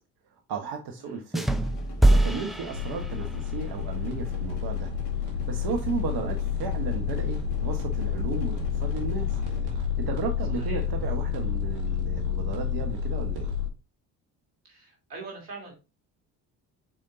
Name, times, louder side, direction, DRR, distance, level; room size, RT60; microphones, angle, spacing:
voice 1, 0.3-1.5 2.1-4.9 5.5-9.4 9.7-13.5, right 5 dB, 55° right, 4 dB, 1.2 m, -34 dB
sound 1, 1.3-3.5, right 1 dB, ahead, 0.5 m, -23 dB
sound 2, 1.5-9.6, left 6 dB, 55° left, 1.7 m, -45 dB
sound 3, 2.7-13.7, left 8 dB, 70° right, 2.2 m, -29 dB
voice 2, 10.5-10.9 14.6-15.7, right 3 dB, 85° right, -1 dB, 2.6 m, -43 dB
5.3 x 4.5 x 4.0 m, 0.29 s
hypercardioid pair, 50°, 46 cm